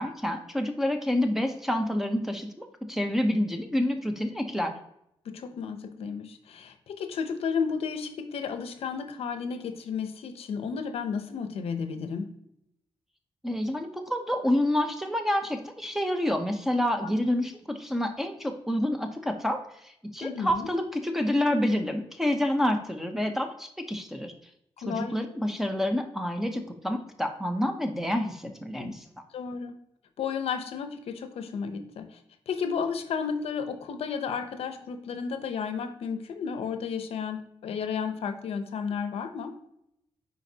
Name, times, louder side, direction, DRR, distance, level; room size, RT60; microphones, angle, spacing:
voice 1, 0.0-4.7 13.4-24.3 24.8-29.0, left 1 dB, 5° right, 5 dB, 0.6 m, -28 dB
voice 2, 5.3-12.3 17.0-17.1 20.2-20.7 24.8-25.2 28.8-28.9 29.3-29.8 30.2-32.2 32.5-39.5, left 6 dB, 85° left, 9 dB, 0.7 m, -33 dB
9.5 x 4.2 x 2.8 m, 0.77 s
wide cardioid pair, 145°, 10 cm